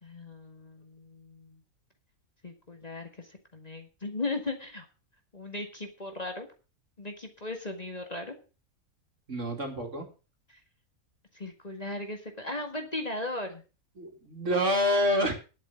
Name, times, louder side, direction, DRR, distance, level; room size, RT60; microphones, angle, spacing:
voice 1, 0.0-1.6 2.4-4.9 5.3-6.5 7.0-8.3 10.5-10.6 11.3-13.6, left 2 dB, 30° left, 4 dB, 2.0 m, -37 dB
voice 2, 9.3-10.1 14.0-15.3, equal, 55° right, 3 dB, 3.1 m, -27 dB
11.0 x 8.3 x 7.0 m, 0.34 s
omnidirectional pair, 1.5 m